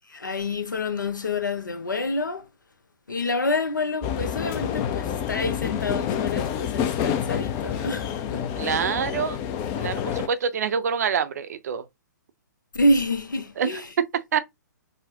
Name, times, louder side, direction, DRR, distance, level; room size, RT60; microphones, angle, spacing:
voice 1, 0.1-2.5 3.1-8.9 12.7-13.9, left 2 dB, 80° left, 0.7 m, -27 dB
sound 1, 4.0-10.3, left 9 dB, 25° left, 0.4 m, -28 dB
voice 2, 8.6-9.4 9.8-11.8 13.6-13.8 14.3-14.4, right 6 dB, 55° right, 0.5 m, -26 dB
4.0 x 2.1 x 2.8 m
figure-of-eight pair, 120°, 10 cm